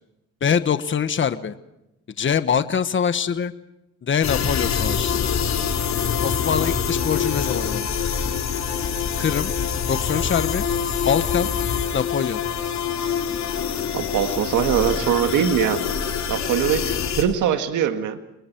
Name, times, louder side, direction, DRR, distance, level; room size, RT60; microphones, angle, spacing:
voice 1, 0.4-1.5 2.2-3.5 4.0-5.3 6.2-7.9 9.2-9.5 9.9-10.6 11.0-11.5 11.9-12.4, left 7 dB, 40° left, 11 dB, 1.2 m, -23 dB
sound 1, 4.2-17.2, left 7 dB, 65° left, 3.6 m, -25 dB
voice 2, 13.9-15.9 16.3-18.2, right 9 dB, 80° right, 7 dB, 1.8 m, -22 dB
29.5 x 22.0 x 4.6 m, 0.89 s
cardioid pair, 90°, 30 cm